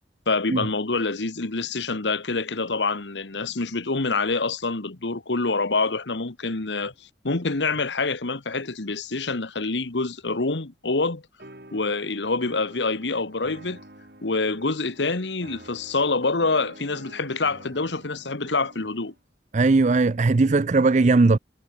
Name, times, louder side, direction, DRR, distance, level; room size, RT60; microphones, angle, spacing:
voice 1, 0.3-6.9 7.2-11.2 11.7-13.8 14.2-19.1, left 3 dB, 90° left, 1.5 m, -26 dB
sound 1, 11.4-19.2, right 1 dB, 60° right, 6.1 m, -48 dB
voice 2, 19.5-21.4, right 3 dB, 40° right, 0.5 m, -18 dB
head